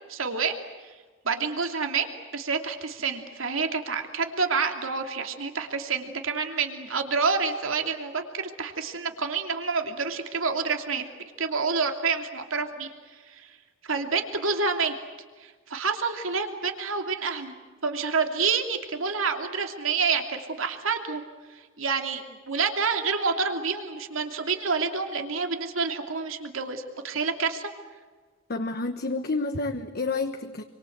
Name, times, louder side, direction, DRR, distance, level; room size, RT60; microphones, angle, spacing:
voice 1, 0.1-0.5 0.8-0.9 1.2-2.1 2.3-11.1 11.4-12.9 13.3-13.6 13.8-14.9 15.4-17.5 17.8-21.2 21.5-27.7, right 5 dB, 85° right, 5 dB, 2.8 m, -28 dB
voice 2, 28.5-30.6, left 3 dB, 50° left, 7 dB, 1.1 m, -29 dB
27.5 x 24.5 x 8.0 m, 1.4 s
head